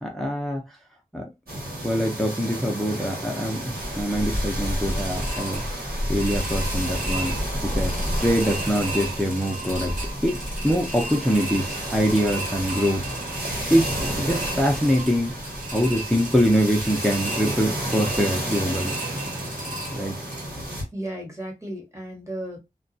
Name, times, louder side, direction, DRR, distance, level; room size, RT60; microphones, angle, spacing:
voice 1, 0.0-0.6 1.1-1.3 1.8-5.6 6.1-7.3 7.6-10.0 10.2-13.1 13.7-15.4 15.7-18.9 19.9-20.2, equal, ahead, 0.5 m, -24 dB
sound 1, 1.5-20.8, right 1 dB, 90° right, 1.4 m, -32 dB
sound 2, 3.8-20.5, equal, 60° right, 1.1 m, -32 dB
voice 2, 20.9-22.6, right 1 dB, 20° right, 1.0 m, -34 dB
2.2 x 2.2 x 2.6 m
wide cardioid pair, 80°, 15 cm